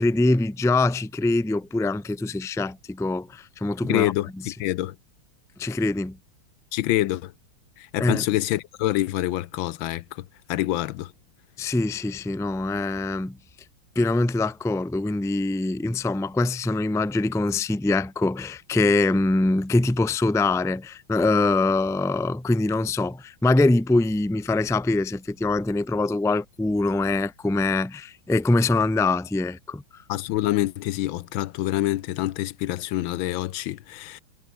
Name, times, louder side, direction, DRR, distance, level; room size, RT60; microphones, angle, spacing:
voice 1, 0.0-4.1 4.4-4.5 5.6-6.2 8.0-8.2 11.6-13.4 13.9-30.0, left 2 dB, 5° left, 0.4 m, -23 dB
voice 2, 3.8-4.9 6.7-7.3 7.9-10.2 10.5-11.1 30.1-34.2, left 15 dB, 75° left, 1.4 m, -26 dB
omnidirectional pair, 2.3 m